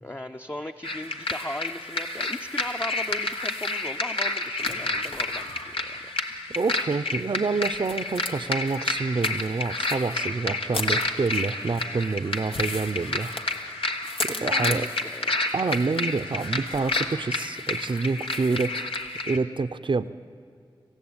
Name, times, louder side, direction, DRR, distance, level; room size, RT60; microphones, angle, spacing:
voice 1, 0.0-6.1 14.3-15.5, left 1 dB, 20° left, 5 dB, 0.7 m, -38 dB
sound 1, 0.8-19.4, left 2 dB, 80° left, 1.5 m, -30 dB
voice 2, 6.5-13.3 14.2-14.9 15.5-18.9 19.3-20.1, right 4 dB, 60° right, 13 dB, 0.7 m, -27 dB
26.5 x 15.5 x 8.8 m, 2.4 s
wide cardioid pair, 50°, 9 cm